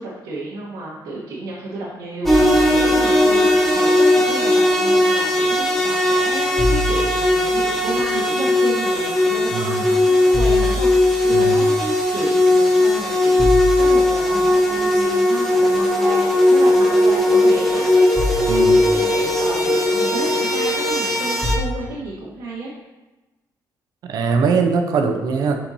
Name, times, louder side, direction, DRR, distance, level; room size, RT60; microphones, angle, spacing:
voice 1, 0.0-3.5 3.7-13.5 13.8-17.9 18.6-22.7, right 2 dB, 80° right, -6 dB, 1.4 m, -31 dB
sound 1, 2.3-21.6, left 1 dB, ahead, 0.9 m, -17 dB
voice 2, 9.5-9.8 11.3-11.7 14.9-15.0 18.5-18.9 24.0-25.6, right 5 dB, 60° right, 5 dB, 0.7 m, -21 dB
9.8 x 4.4 x 2.8 m, 1.1 s
cardioid pair, 170°, 7 cm